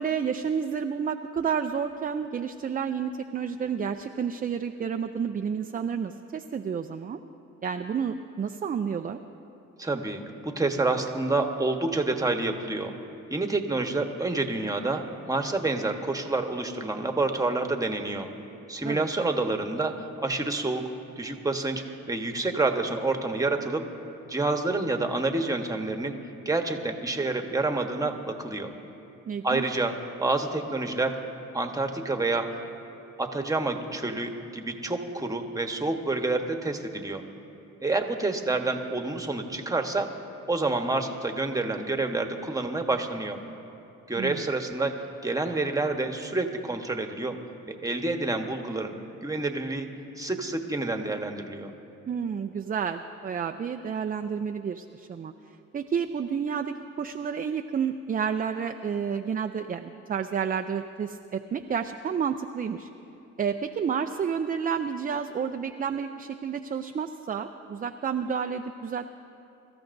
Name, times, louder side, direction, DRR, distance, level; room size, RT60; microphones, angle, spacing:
voice 1, 0.0-7.2 7.6-9.2 18.8-19.1 29.3-29.6 44.2-44.5 52.1-55.3 55.7-62.9 63.4-69.1, right 7 dB, 30° right, 6 dB, 0.4 m, -30 dB
voice 2, 9.8-12.9 13.3-18.3 18.7-20.8 21.2-23.8 24.3-26.2 26.4-28.7 29.4-29.9 30.2-31.1 31.5-32.6 33.2-37.2 37.8-40.1 40.5-43.4 44.1-45.0 45.2-47.3 47.7-48.9 49.2-49.9 50.2-51.7, right 2 dB, 10° right, 4 dB, 1.2 m, -28 dB
24.5 x 14.0 x 2.6 m, 2.8 s
cardioid pair, 90°, 30 cm